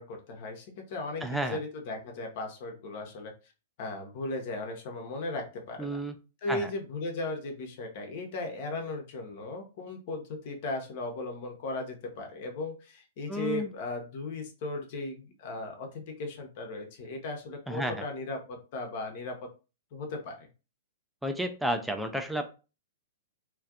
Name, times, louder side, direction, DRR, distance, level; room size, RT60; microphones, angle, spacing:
voice 1, 0.0-3.3 3.8-6.0 6.4-19.5 19.9-20.5, left 2 dB, 45° left, 3 dB, 0.6 m, -37 dB
voice 2, 1.2-1.6 5.8-6.1 6.5-6.7 13.3-13.7 17.7-18.1 21.2-22.4, right 1 dB, 5° right, 6 dB, 0.3 m, -31 dB
2.5 x 2.2 x 2.3 m, 0.32 s
figure-of-eight pair, 105°, 0 cm